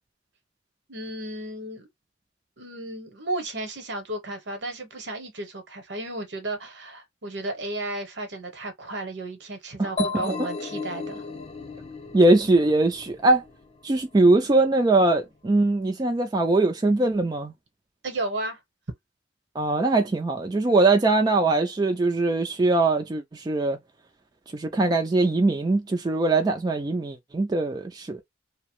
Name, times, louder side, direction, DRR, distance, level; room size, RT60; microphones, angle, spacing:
voice 1, 0.9-1.9 2.6-11.2 18.0-18.6, right 2 dB, 65° right, 0.9 m, -33 dB
sound 1, 10.0-13.6, left 3 dB, 30° left, 0.6 m, -34 dB
voice 2, 12.1-13.4 13.8-17.5 19.6-23.8 24.5-28.2, right 2 dB, 20° right, 0.4 m, -21 dB
2.8 x 2.0 x 3.0 m
head